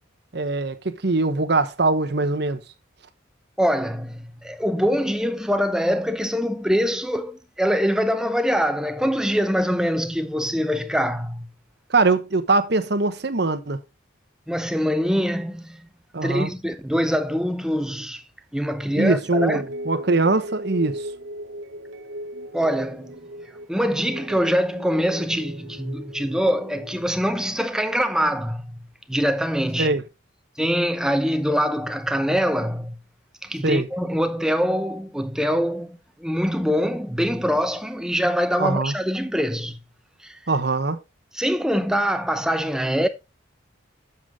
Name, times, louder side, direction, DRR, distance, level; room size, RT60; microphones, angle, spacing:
voice 1, 0.3-2.6 11.9-13.8 16.1-16.5 19.0-21.1 29.8-30.0 33.6-33.9 38.6-38.9 40.5-41.0, right 3 dB, 55° right, 1.0 m, -22 dB
voice 2, 3.6-11.5 14.5-15.8 16.2-18.2 18.5-19.6 22.5-23.2 23.7-28.8 29.1-29.9 30.6-33.0 33.4-39.8 40.2-40.4 41.3-43.1, equal, 5° right, 0.7 m, -24 dB
sound 1, 19.3-27.7, equal, 80° right, 1.0 m, -37 dB
7.8 x 7.1 x 3.6 m
head